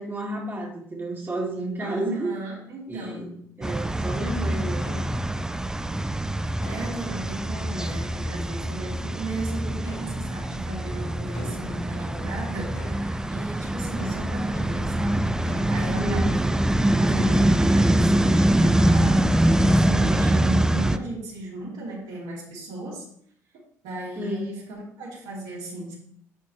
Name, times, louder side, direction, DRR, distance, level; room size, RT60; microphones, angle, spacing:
voice 1, 0.0-2.3 2.9-3.3 3.6-5.0 15.9-16.3 24.2-24.5, right 2 dB, 25° right, -2 dB, 1.9 m, -31 dB
voice 2, 1.8-3.4 6.7-16.5 17.0-23.1 23.8-26.0, right 2 dB, 70° right, -5 dB, 2.8 m, -36 dB
sound 1, 3.6-21.0, right 1 dB, 5° right, 0.4 m, -24 dB
sound 2, 4.8-5.9 6.6-8.9 9.7-10.8 11.3-12.2 12.6-19.5 19.9-21.0 21.4-21.5 22.1-22.2, left 1 dB, 85° left, 1.4 m, -45 dB
10.5 x 4.1 x 3.1 m, 0.66 s
hypercardioid pair, 55°, 8 cm